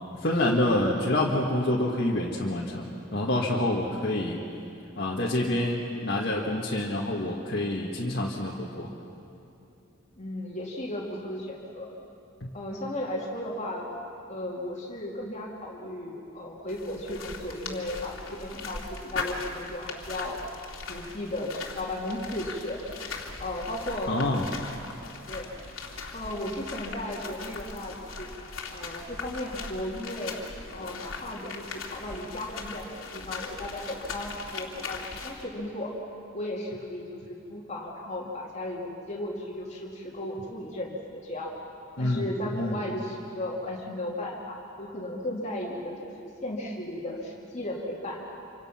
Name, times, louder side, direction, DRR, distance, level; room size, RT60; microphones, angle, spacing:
voice 1, 0.2-4.4 5.0-8.9 12.4-12.5 24.1-24.5 42.0-42.3 42.5-42.8, left 1 dB, 50° left, -4 dB, 2.0 m, -27 dB
voice 2, 10.2-11.9 12.5-13.9 14.3-20.4 20.9-22.8 23.4-24.2 25.3-25.5 26.1-28.3 28.7-30.3 30.7-35.9 36.3-41.5 42.0-48.2, left 1 dB, 35° left, -2 dB, 2.6 m, -35 dB
sound 1, 16.7-35.4, left 4 dB, 85° left, 2.7 m, -39 dB
28.0 x 26.0 x 5.9 m, 2.8 s
head